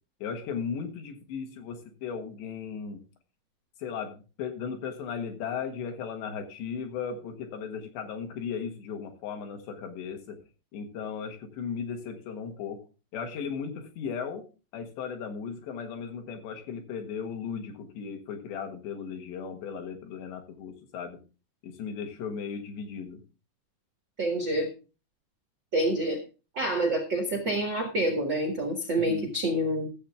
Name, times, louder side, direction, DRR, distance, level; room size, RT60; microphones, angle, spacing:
voice 1, 0.2-3.0 3.8-10.4 10.7-12.8 13.1-14.5 14.7-21.2 21.6-23.2 29.0-29.3, left 6 dB, 75° left, 4 dB, 3.7 m, -36 dB
voice 2, 24.2-24.7 25.7-26.2 26.5-29.9, right 1 dB, 90° right, 2 dB, 1.0 m, -27 dB
14.5 x 7.6 x 3.5 m, 0.33 s
omnidirectional pair, 5.0 m